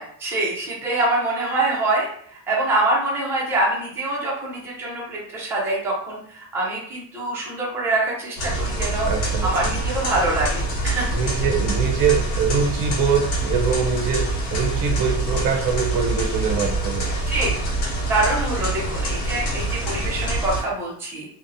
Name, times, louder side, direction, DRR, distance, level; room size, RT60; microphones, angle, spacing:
voice 1, 0.0-9.1 9.4-11.1 17.3-17.5 18.1-21.3, right 2 dB, 5° right, -5 dB, 0.4 m, -25 dB
sound 1, 8.4-20.6, right 2 dB, 75° left, 1.2 m, -25 dB
voice 2, 9.1-9.5 11.1-17.1, right 6 dB, 55° right, 2 dB, 0.6 m, -23 dB
2.7 x 2.0 x 2.5 m, 0.63 s
cardioid pair, 150°, 42 cm